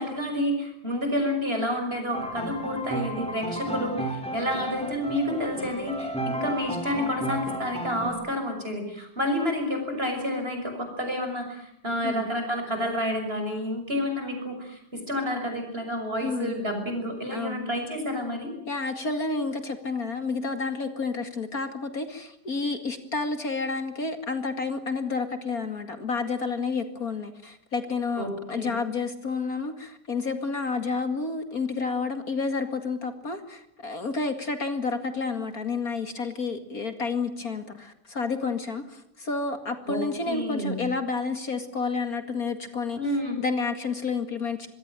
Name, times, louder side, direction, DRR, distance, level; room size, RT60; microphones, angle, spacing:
voice 1, 0.0-18.5 28.2-28.7 39.9-40.8 43.0-43.4, left 1 dB, 30° right, 4 dB, 6.6 m, -29 dB
sound 1, 2.1-8.1, right 1 dB, 5° left, 4.8 m, -33 dB
voice 2, 16.2-16.7 17.3-17.8 18.7-43.0 43.4-44.7, left 4 dB, 45° left, 8 dB, 2.5 m, -30 dB
25.5 x 22.0 x 9.1 m, 0.70 s
omnidirectional pair, 2.2 m